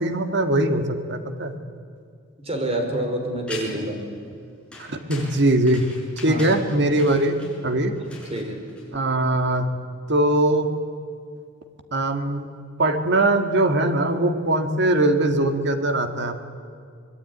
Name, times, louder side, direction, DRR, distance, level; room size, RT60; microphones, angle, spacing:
voice 1, 0.0-1.5 4.8-5.9 6.2-7.4 7.6-7.9 8.9-9.7 10.1-10.7 11.9-12.5 12.8-16.4, right 1 dB, 60° right, 7 dB, 2.1 m, -21 dB
voice 2, 2.4-4.0 6.3-6.5 8.0-8.6, right 1 dB, 30° right, 3 dB, 4.8 m, -27 dB
sound 1, 3.5-4.0 4.7-9.2, left 2 dB, 5° left, 7.0 m, -40 dB
25.5 x 20.5 x 9.6 m, 2.3 s
head